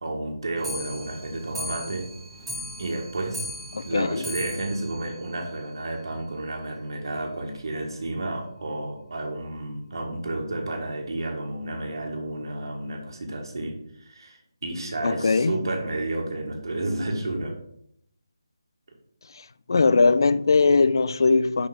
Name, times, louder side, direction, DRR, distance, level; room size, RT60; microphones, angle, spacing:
voice 1, 0.0-2.1 2.8-3.5 3.8-17.6, right 2 dB, 60° right, 1.5 m, -31 dB
Clock, 0.6-6.1 6.4-6.5 6.8-6.9 7.2-7.3 7.5-7.6 8.3-8.4 9.1-9.2 9.9-10.0, left 1 dB, 5° right, 1.3 m, -38 dB
voice 2, 3.7-4.2 15.0-15.5 19.7-21.7, left 4 dB, 60° left, 0.4 m, -20 dB
5.2 x 5.1 x 4.9 m
figure-of-eight pair, 160°, 3 cm